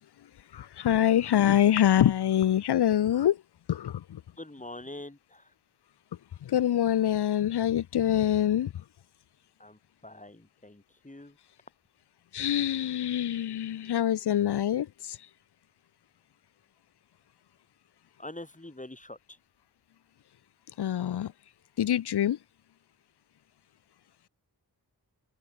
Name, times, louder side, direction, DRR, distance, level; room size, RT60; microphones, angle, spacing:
voice 1, 0.5-3.4 3.7-4.2 6.4-8.7 12.3-15.3 20.8-21.3 21.8-22.4, left 11 dB, 85° left, 0.7 m, -25 dB
voice 2, 4.4-5.5 9.6-11.4 18.2-19.4, left 1 dB, 20° left, 5.2 m, -44 dB
open air
cardioid pair, 60°, 39 cm